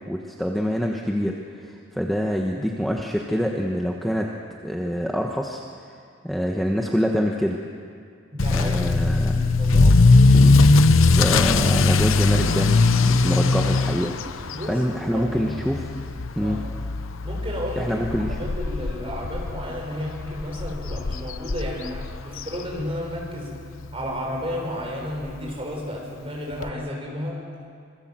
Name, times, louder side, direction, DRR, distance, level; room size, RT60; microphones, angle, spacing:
voice 1, 0.1-4.3 4.6-5.6 6.2-7.6 8.5-9.4 10.3-10.7 11.0-15.9 16.3-16.6 17.8-18.4, equal, ahead, 0 dB, 1.2 m, -26 dB
voice 2, 8.3-8.8 9.2-10.3 14.5-15.5 16.4-16.7 17.2-18.0 18.3-23.6 23.9-27.4, equal, 25° right, -2 dB, 6.1 m, -32 dB
Motor vehicle (road) / Accelerating revving vroom, 8.4-23.2 23.5-23.9 24.4-24.5 24.8-24.9 25.2-25.3 26.6-26.7, left 3 dB, 75° left, 0.8 m, -20 dB
26.5 x 21.5 x 7.6 m, 2.3 s
head